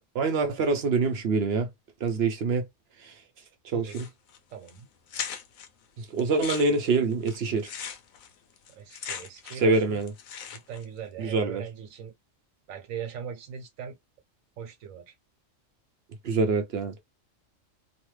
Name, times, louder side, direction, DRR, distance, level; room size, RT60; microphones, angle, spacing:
voice 1, 0.0-1.7 2.0-2.7 3.0-3.1 3.6-4.1 6.0-7.7 9.5-10.1 11.2-11.6 16.2-17.0, right 3 dB, 65° right, 0.7 m, -25 dB
sound 1, 3.9-4.4 4.7-4.8 5.1-5.7 6.2-9.7 10.0-10.8, left 8 dB, 85° left, 1.1 m, -38 dB
voice 2, 4.5-4.9 8.7-10.0 10.5-12.1 12.7-14.0 14.6-15.2, right 8 dB, 80° right, 1.1 m, -40 dB
3.0 x 2.1 x 3.1 m
omnidirectional pair, 1.4 m